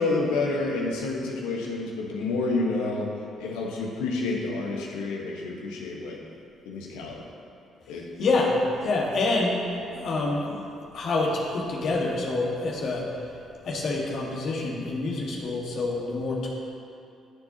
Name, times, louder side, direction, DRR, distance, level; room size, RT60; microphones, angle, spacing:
voice 1, 0.0-3.1 3.4-6.2 6.6-7.2 7.9-8.3, left 3 dB, 75° left, -1 dB, 1.3 m, -29 dB
voice 2, 7.8-8.6 8.8-9.6 9.9-10.6 10.9-13.1 13.6-16.5, left 3 dB, 60° left, -2 dB, 1.7 m, -27 dB
14.5 x 7.1 x 2.9 m, 2.6 s
hypercardioid pair, 45°, 0 cm